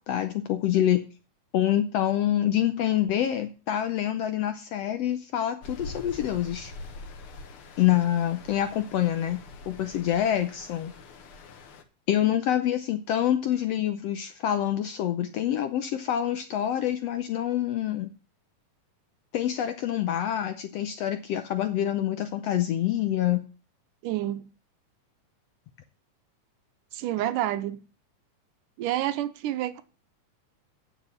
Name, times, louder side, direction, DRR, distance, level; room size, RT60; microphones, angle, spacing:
voice 1, 0.1-1.0 1.5-6.7 7.8-10.9 12.1-18.1 19.3-23.5, left 11 dB, 80° left, 1.4 m, -26 dB
Stream, 5.6-11.8, left 3 dB, 55° left, 1.7 m, -44 dB
voice 2, 24.0-24.5 26.9-27.8 28.8-29.8, right 13 dB, 80° right, 2.3 m, -28 dB
9.1 x 7.4 x 7.2 m
omnidirectional pair, 3.8 m